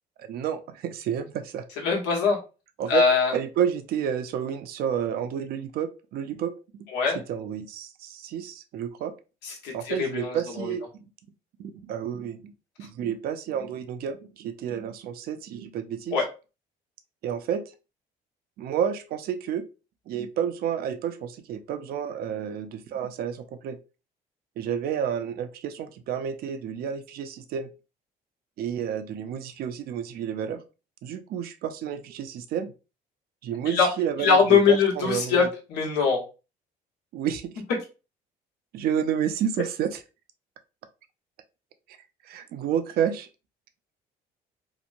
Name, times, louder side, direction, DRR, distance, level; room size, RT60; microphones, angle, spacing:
voice 1, 0.2-1.6 2.8-3.0 3.3-6.5 7.3-9.1 9.7-10.8 11.6-12.5 12.8-16.2 17.2-17.6 18.6-19.6 20.1-23.8 24.6-27.7 28.6-30.6 31.0-32.7 33.4-35.5 37.1-37.4 38.7-40.0 42.2-43.3, right 8 dB, 65° right, 10 dB, 0.4 m, -30 dB
voice 2, 1.8-2.4 2.9-3.3 6.9-7.2 9.4-10.7 16.1-16.3 33.7-33.9 34.2-36.2, left 5 dB, 85° left, 0 dB, 1.0 m, -22 dB
2.9 x 2.1 x 2.5 m, 0.31 s
cardioid pair, 110°, 17 cm